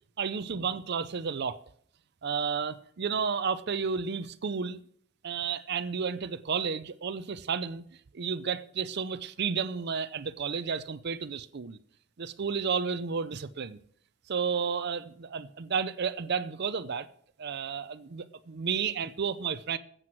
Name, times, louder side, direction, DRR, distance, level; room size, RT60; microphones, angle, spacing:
voice 1, 0.2-1.6 2.2-4.8 5.2-7.8 8.1-11.8 12.2-13.8 14.3-17.1 17.4-19.8, right 6 dB, 55° right, 0.5 m, -32 dB
13.5 x 7.8 x 6.1 m
head